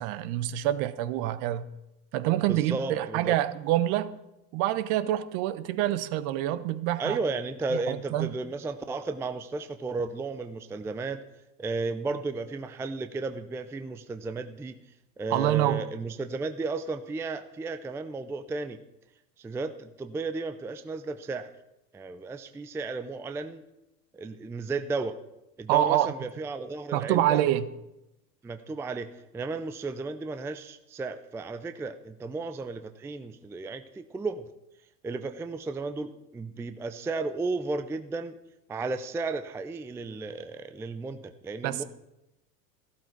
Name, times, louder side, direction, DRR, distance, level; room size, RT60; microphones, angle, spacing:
voice 1, 0.0-1.6 2.1-4.2 4.5-7.2 7.7-8.3 15.3-15.8 25.7-26.1 26.9-27.7 41.6-41.8, right 13 dB, 50° right, 1.0 m, -26 dB
voice 2, 2.5-3.3 7.0-11.2 11.6-14.8 15.2-18.8 19.4-21.5 21.9-23.6 24.1-25.1 25.6-27.4 28.4-34.5 35.0-38.3 38.7-41.8, right 3 dB, 5° right, 0.4 m, -34 dB
14.5 x 12.0 x 4.6 m
hypercardioid pair, 85°, 49 cm